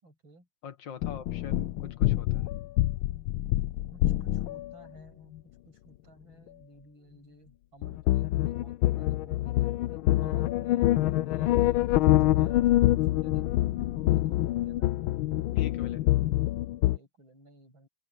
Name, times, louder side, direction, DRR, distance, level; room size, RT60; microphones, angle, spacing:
voice 1, 0.0-0.5 3.9-5.4 5.6-14.9 16.9-17.9, right 1 dB, 80° right, 8.1 m, -55 dB
voice 2, 0.6-2.5 15.6-16.2, left 8 dB, 70° left, 2.0 m, -42 dB
sound 1, 1.0-4.7 7.8-17.0, left 15 dB, 90° left, 1.5 m, -26 dB
omnidirectional pair, 2.2 m